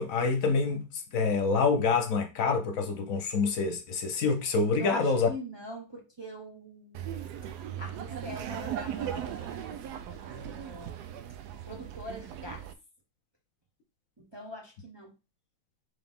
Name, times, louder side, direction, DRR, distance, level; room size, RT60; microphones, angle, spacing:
voice 1, 0.0-5.3, left 4 dB, 60° left, 1.1 m, -27 dB
voice 2, 4.8-7.1 7.8-9.8 10.1-11.0 11.6-12.7 14.2-15.1, equal, 40° right, 0.3 m, -43 dB
Laughter, 6.9-12.7, right 10 dB, 75° right, 1.1 m, -38 dB
3.8 x 3.4 x 3.5 m
omnidirectional pair, 1.8 m